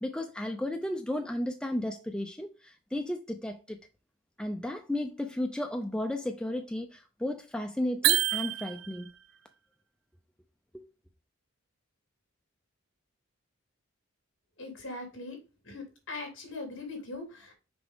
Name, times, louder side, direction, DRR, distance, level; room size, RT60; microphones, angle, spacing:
voice 1, 0.0-3.8 4.4-9.1 10.7-10.8, left 1 dB, 5° left, 0.4 m, -34 dB
sound 1, 8.0-9.2, right 16 dB, 60° right, 0.3 m, -27 dB
voice 2, 14.6-15.4 15.7-17.5, left 2 dB, 60° left, 3.0 m, -40 dB
6.0 x 5.2 x 3.5 m
head